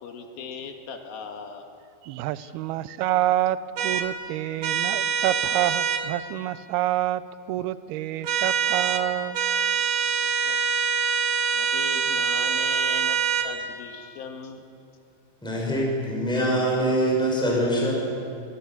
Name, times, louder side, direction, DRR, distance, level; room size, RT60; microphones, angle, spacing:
voice 1, 0.0-1.7 2.3-2.5 10.2-10.6 11.5-14.6, left 5 dB, 70° left, 4 dB, 3.2 m, -38 dB
voice 2, 2.0-7.2 7.5-9.4, right 14 dB, 80° right, 15 dB, 2.5 m, -27 dB
sound 1, 3.8-4.1 4.6-6.0 8.2-9.0 9.3-13.5, right 6 dB, 65° right, 2.7 m, -24 dB
voice 3, 15.4-17.9, equal, ahead, -3 dB, 5.8 m, -24 dB
25.5 x 22.0 x 7.4 m, 2.5 s
omnidirectional pair, 4.7 m